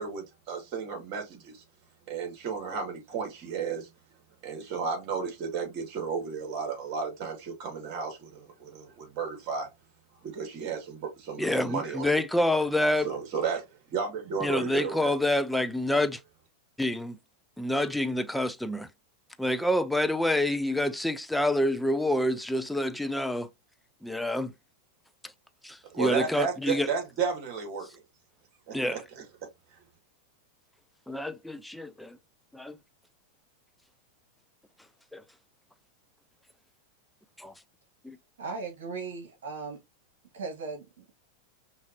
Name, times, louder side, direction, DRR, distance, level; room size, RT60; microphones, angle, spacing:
voice 1, 0.0-1.6 2.1-3.9 4.4-9.7 10.2-12.2 13.0-15.1 25.9-27.9 28.7-29.0, right 6 dB, 50° right, 2.8 m, -33 dB
voice 2, 11.4-13.1 14.4-16.2 16.8-17.2 17.6-18.9 19.4-23.5 24.0-24.5 25.2-25.3 25.6-26.9 28.7-29.0 31.1-32.2 32.5-32.8 35.1-35.2 37.4-37.5 38.0-38.2, left 1 dB, ahead, 0.6 m, -27 dB
voice 3, 38.4-39.8 40.3-41.1, right 4 dB, 70° right, 1.8 m, -37 dB
5.5 x 3.0 x 2.9 m
hypercardioid pair, 100°, 0 cm